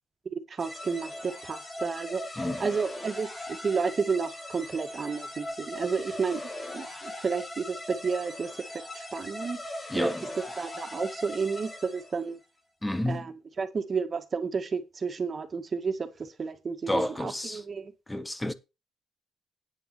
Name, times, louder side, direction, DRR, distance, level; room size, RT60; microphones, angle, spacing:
voice 1, 0.3-2.2 2.6-6.4 6.7-9.6 9.9-10.1 10.6-12.4 13.1-17.9, right 5 dB, 40° right, 2.0 m, -31 dB
sound 1, 0.6-12.3, left 1 dB, 25° left, 2.5 m, -39 dB
voice 2, 2.4-2.7 9.9-10.3 12.8-13.3 16.9-17.6 18.1-18.5, left 1 dB, 10° left, 1.3 m, -30 dB
9.3 x 5.5 x 6.2 m
cardioid pair, 90°, 0 cm